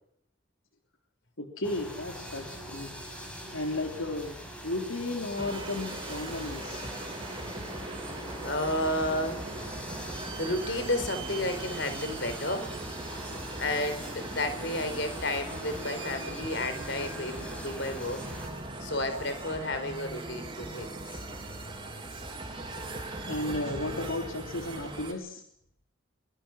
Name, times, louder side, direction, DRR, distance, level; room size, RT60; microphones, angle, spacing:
voice 1, 1.4-2.9 3.5-4.4 4.6-6.9 23.3-25.4, left 2 dB, 85° left, 3 dB, 3.5 m, -34 dB
sound 1, 1.6-18.5, equal, 5° left, 6.5 m, -42 dB
sound 2, 5.4-25.1, right 2 dB, 25° right, 4.2 m, -39 dB
voice 2, 8.4-9.4 10.4-12.7 13.6-18.2 18.8-21.0, left 1 dB, 60° left, 9 dB, 4.7 m, -32 dB
23.0 x 22.5 x 6.4 m, 0.70 s
head